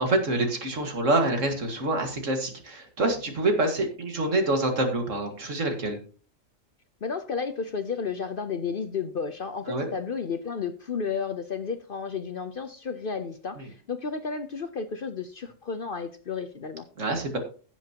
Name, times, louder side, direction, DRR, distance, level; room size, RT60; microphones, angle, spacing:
voice 1, 0.0-6.0 9.7-9.9 13.6-13.7 17.0-17.4, right 2 dB, 65° right, 5 dB, 2.2 m, -26 dB
voice 2, 7.0-16.9, left 5 dB, 50° left, 10 dB, 0.8 m, -32 dB
16.0 x 7.3 x 2.9 m, 0.39 s
omnidirectional pair, 1.4 m